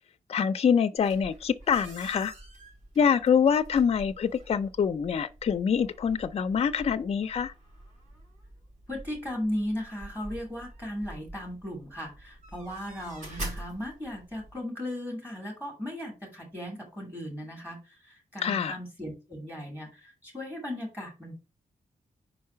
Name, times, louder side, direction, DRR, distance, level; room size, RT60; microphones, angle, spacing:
voice 1, 0.3-2.3 3.0-7.5 18.4-18.8, left 7 dB, 40° left, 0.5 m, -25 dB
sound 1, 1.0-14.6, right 1 dB, 55° right, 3.7 m, -46 dB
voice 2, 8.9-21.3, left 1 dB, 10° right, 2.5 m, -37 dB
5.1 x 4.7 x 5.6 m
wide cardioid pair, 175°, 15 cm